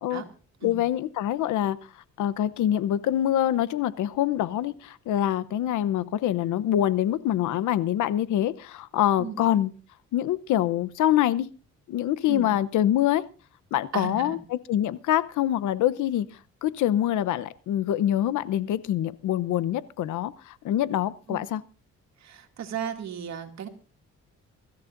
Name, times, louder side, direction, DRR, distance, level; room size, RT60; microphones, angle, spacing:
voice 1, 0.6-1.8 2.2-9.7 10.1-11.5 11.9-13.2 13.7-16.3 16.6-21.6, left 12 dB, 80° left, 17 dB, 0.9 m, -25 dB
voice 2, 13.9-14.4 21.3-21.4 22.2-23.7, right 8 dB, 60° right, 4 dB, 2.4 m, -35 dB
24.0 x 13.5 x 2.6 m, 0.36 s
cardioid pair, 90°, 30 cm